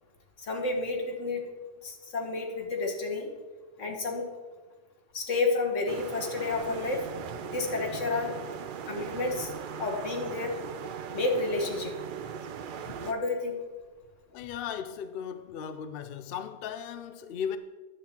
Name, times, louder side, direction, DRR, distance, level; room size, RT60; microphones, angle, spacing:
voice 1, 0.4-1.5 1.8-3.3 3.8-4.3 5.1-7.1 7.5-9.5 9.8-10.5 11.1-11.9 13.0-13.6, left 3 dB, 80° left, 1.7 m, -30 dB
sound 1, 5.9-13.1, right 7 dB, 60° right, 0.6 m, -39 dB
voice 2, 14.3-17.6, left 8 dB, 60° left, 0.7 m, -36 dB
10.0 x 7.4 x 4.3 m
omnidirectional pair, 1.3 m